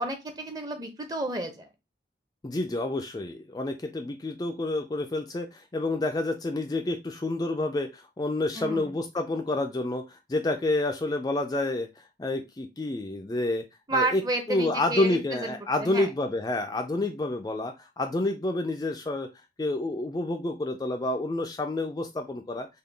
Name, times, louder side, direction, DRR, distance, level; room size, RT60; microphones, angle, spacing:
voice 1, 0.0-1.7 8.5-8.9 13.9-16.1, right 2 dB, 20° right, 5 dB, 0.6 m, -31 dB
voice 2, 2.4-13.6 13.9-14.2 14.5-19.3 19.6-22.7, left 2 dB, 20° left, 4 dB, 0.3 m, -29 dB
3.7 x 2.2 x 3.3 m, 0.23 s
head